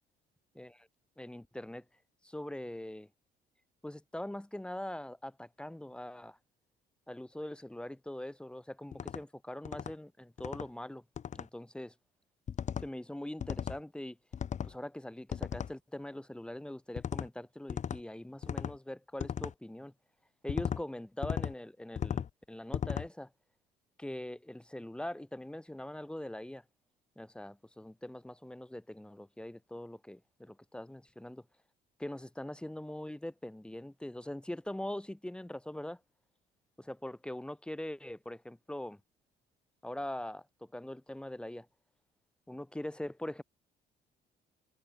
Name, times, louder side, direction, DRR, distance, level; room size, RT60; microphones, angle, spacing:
voice 1, 1.2-1.8 2.2-3.1 3.8-6.4 7.1-11.0 11.3-11.9 12.8-14.2 14.6-19.9 20.4-23.3 24.0-26.6 27.2-31.4 32.0-36.0 36.8-39.0 39.8-41.7 42.5-43.4, left 1 dB, 5° left, 5.0 m, -42 dB
sound 1, 8.9-9.2 9.6-9.9 10.4-10.7 11.2-11.5 12.5-12.9 13.4-13.8 14.3-14.7 15.3-15.7 17.0-17.3 17.7-18.0 18.4-18.8 19.2-19.5 20.5-20.8 21.2-21.5 22.0-22.3 22.7-23.1, left 8 dB, 45° left, 3.2 m, -36 dB
cardioid pair, 110°, 17 cm